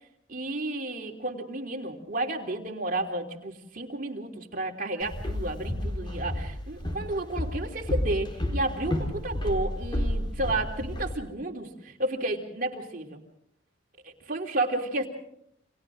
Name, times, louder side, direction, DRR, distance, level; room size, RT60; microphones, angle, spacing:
voice 1, 0.3-13.2 14.0-15.1, right 2 dB, 45° right, 1 dB, 3.3 m, -32 dB
Walk footsteps, 5.0-11.1, left 1 dB, 25° left, 4.0 m, -31 dB
30.0 x 26.0 x 3.8 m, 0.71 s
head